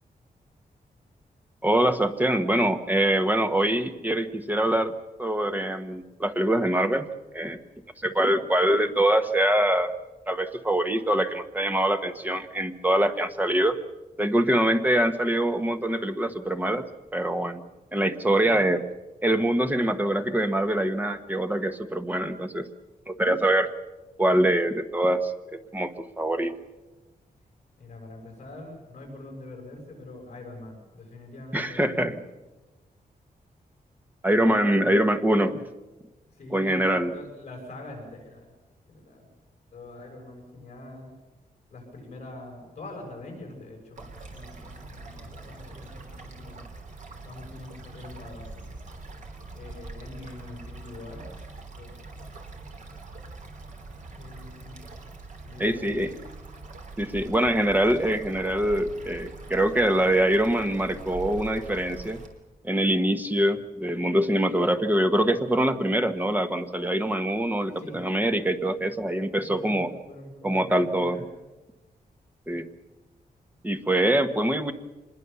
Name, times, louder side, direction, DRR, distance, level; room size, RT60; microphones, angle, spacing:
voice 1, 1.6-7.1 7.3-7.6 8.0-9.9 10.3-13.8 14.2-16.8 17.1-17.6 17.9-18.8 19.2-22.7 23.1-23.7 24.2-26.5 31.5-32.1 34.2-35.6 36.5-37.1 55.6-56.1 57.0-62.2 62.6-69.9 70.4-71.2 72.5-72.7 73.6-74.7, right 1 dB, 10° right, 8 dB, 1.2 m, -24 dB
voice 2, 27.8-32.2 34.4-35.0 36.3-38.5 38.9-39.3 39.7-41.1 41.7-46.6 47.2-48.7 49.5-51.3 51.7-52.0 54.0-54.8 55.4-56.2 67.8-68.0 69.4-71.2, left 2 dB, 45° left, 1 dB, 6.9 m, -44 dB
sound 1, 44.0-62.3, right 3 dB, 55° right, 3.4 m, -43 dB
25.5 x 21.0 x 7.0 m, 1.1 s
wide cardioid pair, 170°, 15 cm